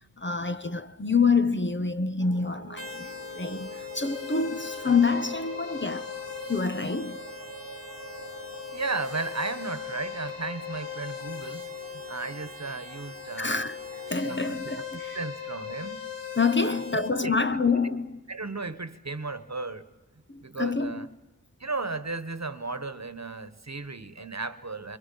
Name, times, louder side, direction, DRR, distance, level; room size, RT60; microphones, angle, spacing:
voice 1, 0.2-6.1 6.5-7.2 13.4-13.8 14.1-15.2 16.4-18.2 20.3-21.1, left 4 dB, 35° left, 0.9 m, -27 dB
sound 1, 2.2-14.1, right 6 dB, 90° right, 1.0 m, -47 dB
sound 2, 2.8-17.1, left 7 dB, 80° left, 3.7 m, -39 dB
voice 2, 8.7-11.6 12.1-13.6 14.2-14.8 15.1-16.0 16.6-17.3 17.8-18.0 18.3-19.8 20.4-21.1 21.6-25.0, right 3 dB, 50° right, 1.3 m, -35 dB
28.5 x 25.0 x 5.7 m
wide cardioid pair, 40°, 34 cm